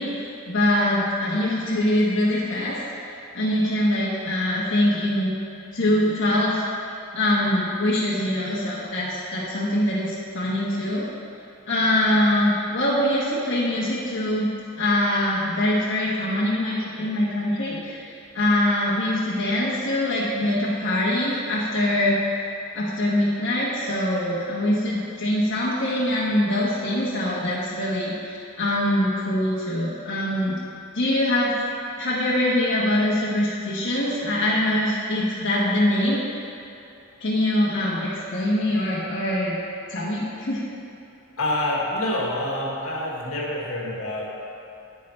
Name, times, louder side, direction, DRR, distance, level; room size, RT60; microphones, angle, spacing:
voice 1, 0.0-2.8 3.3-5.4 5.7-6.6 7.1-11.1 11.7-14.5 14.8-22.4 22.7-30.6 30.9-31.5 32.0-36.5 37.2-39.6 39.9-40.6, left 1 dB, 60° left, -8 dB, 1.3 m, -23 dB
voice 2, 41.4-44.2, left 1 dB, 80° left, -4 dB, 1.7 m, -27 dB
9.7 x 8.8 x 3.3 m, 2.6 s
head